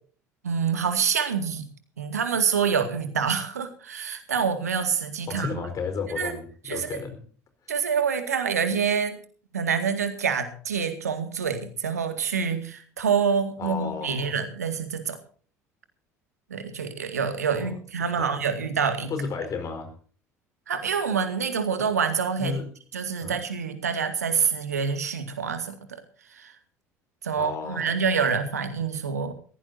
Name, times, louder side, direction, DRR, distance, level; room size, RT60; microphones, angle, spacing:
voice 1, 0.4-1.7 2.0-5.6 6.2-6.4 6.7-7.0 7.7-9.2 9.5-15.2 16.5-19.1 20.7-22.6 22.9-26.0 26.3-26.5 27.2-29.3, right 6 dB, 80° right, 9 dB, 2.1 m, -26 dB
voice 2, 5.3-7.2 13.6-14.3 17.5-17.7 18.2-18.4 19.1-19.9 22.4-22.7 23.2-23.4 27.4-27.9, left 5 dB, 40° left, 7 dB, 4.6 m, -33 dB
21.0 x 16.0 x 2.8 m, 0.43 s
figure-of-eight pair, 65°, 8 cm